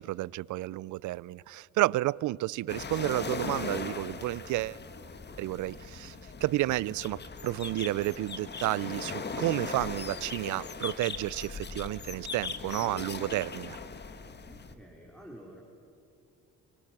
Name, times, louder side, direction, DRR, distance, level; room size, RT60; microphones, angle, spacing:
voice 1, 0.0-4.8 5.4-6.2 6.4-13.8, right 17 dB, 80° right, 0.5 m, -31 dB
sound 1, 2.7-14.7, left 4 dB, 35° left, 1.6 m, -39 dB
voice 2, 14.5-15.6, equal, 5° left, 4.1 m, -50 dB
28.0 x 24.5 x 6.0 m
cardioid pair, 90°, 30 cm